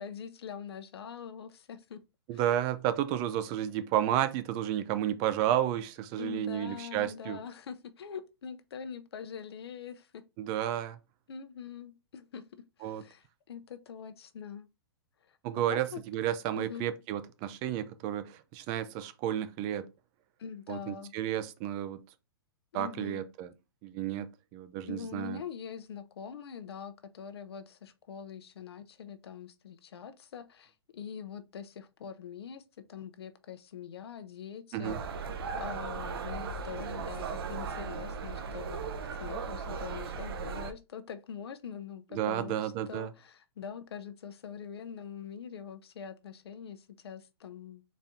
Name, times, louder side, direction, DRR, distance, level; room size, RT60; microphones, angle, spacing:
voice 1, 0.0-2.0 2.3-2.5 6.2-10.2 11.3-14.7 15.3-15.4 15.7-16.0 16.6-16.9 20.4-21.1 22.7-23.2 24.9-35.0 35.6-38.8 39.2-47.8, left 7 dB, 80° left, 0.7 m, -43 dB
voice 2, 2.3-7.4 10.4-11.0 12.8-13.0 15.4-19.9 20.7-22.0 22.7-23.5 23.8-25.4 34.7-35.0 42.1-43.1, right 11 dB, 30° right, 0.4 m, -32 dB
sound 1, 34.8-40.7, right 5 dB, 70° right, 0.8 m, -37 dB
4.1 x 2.7 x 3.5 m
hypercardioid pair, 150°, 13 cm